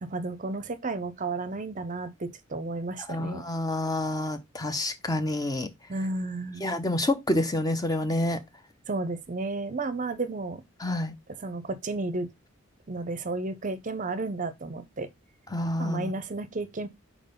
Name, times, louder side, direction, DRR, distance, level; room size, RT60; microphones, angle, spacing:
voice 1, 0.0-3.4 5.9-6.7 8.9-10.6 11.4-12.3 12.9-15.1 15.8-16.9, right 3 dB, 35° right, 0.6 m, -32 dB
voice 2, 3.1-5.7 6.6-8.4 10.8-11.1 15.5-16.1, left 1 dB, 15° left, 0.7 m, -28 dB
4.7 x 3.9 x 5.1 m
head